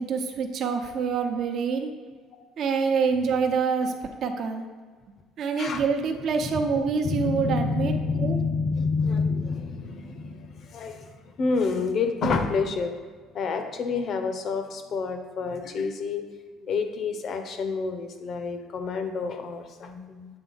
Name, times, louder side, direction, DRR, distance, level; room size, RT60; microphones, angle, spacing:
voice 1, 0.0-1.9 2.6-3.9 4.2-4.6 5.4-7.9 8.2-8.4, right 5 dB, 55° right, 4 dB, 0.8 m, -26 dB
voice 2, 7.0-12.9 13.3-16.2 16.6-20.3, left 4 dB, 55° left, 7 dB, 0.9 m, -28 dB
8.0 x 3.4 x 5.6 m, 1.5 s
supercardioid pair, 95°, 0 cm